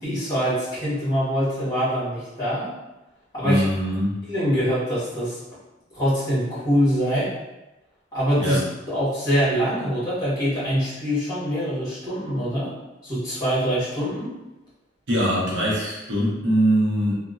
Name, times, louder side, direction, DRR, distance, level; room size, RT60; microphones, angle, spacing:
voice 1, 0.0-2.7 3.3-3.6 4.3-5.4 5.9-7.3 8.1-8.6 8.9-12.7 13.0-14.3, equal, 20° left, -11 dB, 1.5 m, -24 dB
voice 2, 3.4-4.2 8.4-8.6 15.1-17.1, equal, 75° right, -5 dB, 0.7 m, -22 dB
2.8 x 2.2 x 2.5 m, 1.0 s
head